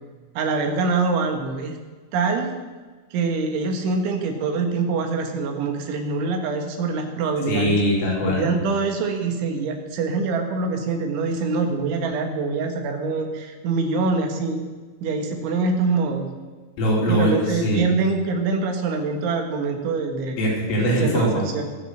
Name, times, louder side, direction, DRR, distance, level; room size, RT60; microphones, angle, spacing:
voice 1, 0.4-1.8 2.1-2.5 3.1-7.8 8.2-14.6 15.0-16.3 17.1-20.4 21.0-21.6, right 4 dB, 75° right, 4 dB, 4.1 m, -24 dB
voice 2, 7.5-8.4 16.8-17.8 20.4-21.4, equal, 90° left, -4 dB, 6.8 m, -21 dB
22.0 x 8.0 x 6.6 m, 1.4 s
omnidirectional pair, 5.7 m